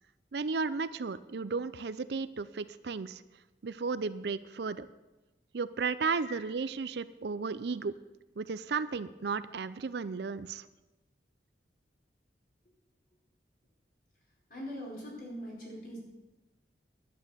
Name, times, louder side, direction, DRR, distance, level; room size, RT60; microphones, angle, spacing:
voice 1, 0.3-3.2 3.6-4.9 5.5-8.0 8.4-10.7, right 4 dB, 70° right, 15 dB, 0.5 m, -34 dB
voice 2, 14.5-16.0, equal, 50° left, -3 dB, 4.8 m, -42 dB
11.0 x 9.3 x 6.8 m, 1.1 s
head